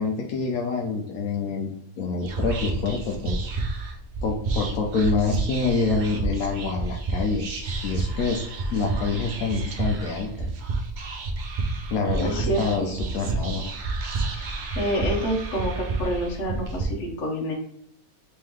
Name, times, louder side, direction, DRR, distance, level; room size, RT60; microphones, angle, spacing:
voice 1, 0.0-3.5 4.2-8.4 8.7-10.5 11.9-13.7, left 4 dB, 80° left, 1 dB, 1.1 m, -27 dB
Whispering, 2.2-16.8, right 3 dB, 65° right, 0.4 m, -30 dB
voice 2, 12.2-12.9 14.4-14.5 14.7-17.5, equal, 55° left, 0 dB, 1.2 m, -28 dB
3.7 x 3.3 x 3.1 m, 0.71 s
omnidirectional pair, 1.5 m